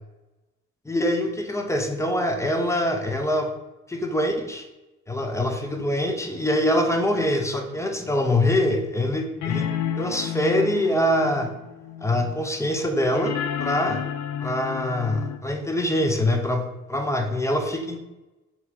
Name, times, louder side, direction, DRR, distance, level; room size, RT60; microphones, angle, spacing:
voice 1, 0.9-3.5 3.9-4.7 5.1-9.7 10.0-11.5 12.0-13.3 13.6-14.0 14.4-18.0, left 1 dB, 10° left, 4 dB, 0.6 m, -24 dB
sound 1, 7.8-7.9 9.4-15.4, left 9 dB, 75° left, 0.5 m, -31 dB
4.0 x 2.7 x 4.4 m, 1.0 s
cardioid pair, 90°, 30 cm